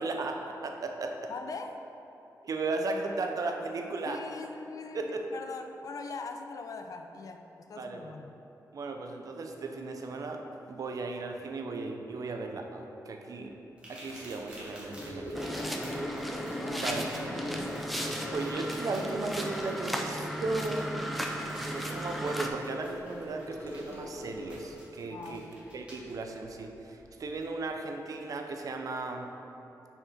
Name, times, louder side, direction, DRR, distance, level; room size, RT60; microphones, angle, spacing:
voice 1, 0.0-1.3 2.4-4.2 4.9-5.3 7.8-8.1 8.7-13.6 13.9-15.7 16.7-17.0 18.3-21.3 21.7-25.4 25.7-29.4, right 3 dB, 55° right, 3 dB, 0.5 m, -36 dB
voice 2, 1.3-1.8 4.1-8.4 16.6-17.8 18.2-19.0 25.1-25.5, left 4 dB, 60° left, 6 dB, 0.4 m, -42 dB
sound 1, 13.8-26.1 27.4-27.5 28.1-28.2, equal, 15° right, 1.4 m, -52 dB
Gurgling / Sink (filling or washing) / Trickle dribble, 14.9-26.6 26.8-27.2 27.4-27.5, equal, 35° left, 1.3 m, -41 dB
sound 2, 15.3-22.5, equal, ahead, 0.5 m, -35 dB
5.3 x 4.5 x 4.2 m, 2.9 s
wide cardioid pair, 110°, 7 cm